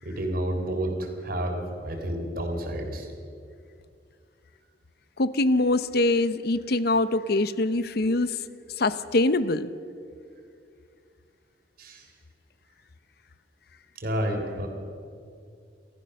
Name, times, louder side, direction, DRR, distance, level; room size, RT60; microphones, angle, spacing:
voice 1, 0.0-3.1 11.8-12.0 14.0-14.7, right 1 dB, 55° right, 3 dB, 3.7 m, -30 dB
voice 2, 5.2-8.3 8.8-9.7, left 2 dB, 60° left, 13 dB, 0.8 m, -23 dB
29.5 x 14.0 x 6.5 m, 2.3 s
head